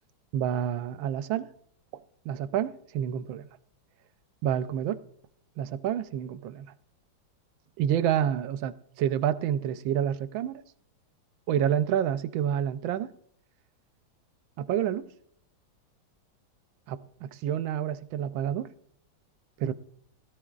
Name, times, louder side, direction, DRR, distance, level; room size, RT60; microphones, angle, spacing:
voice 1, 0.3-1.5 2.2-3.5 4.4-5.0 5.6-6.7 7.8-10.6 11.5-13.1 14.6-15.1 16.9-18.7 19.6-19.7, right 10 dB, 90° right, 1.4 m, -28 dB
20.0 x 13.5 x 2.4 m
omnidirectional pair, 2.1 m